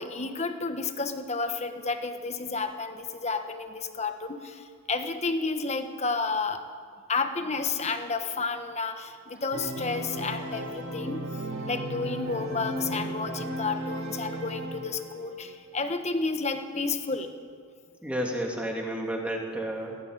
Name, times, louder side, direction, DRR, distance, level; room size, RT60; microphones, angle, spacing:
voice 1, 0.0-6.6 7.1-11.3 11.6-17.3, left 4 dB, 30° left, 7 dB, 1.3 m, -31 dB
Organ, 9.5-15.2, right 1 dB, 85° right, 4.9 m, -35 dB
voice 2, 18.0-20.0, right 1 dB, 5° right, -1 dB, 2.7 m, -31 dB
18.5 x 16.0 x 9.0 m, 2.1 s
head